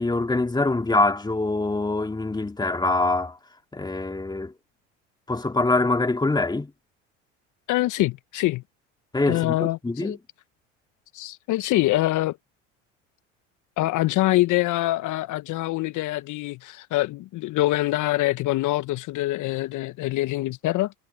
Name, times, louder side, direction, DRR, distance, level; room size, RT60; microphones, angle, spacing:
voice 1, 0.0-3.4 3.7-4.5 5.3-6.7 9.1-10.2, left 2 dB, 10° left, 2.4 m, -24 dB
voice 2, 7.7-8.6 9.3-10.2 11.1-12.4 13.8-20.9, left 17 dB, 55° left, 1.1 m, -24 dB
hypercardioid pair, 75°, 37 cm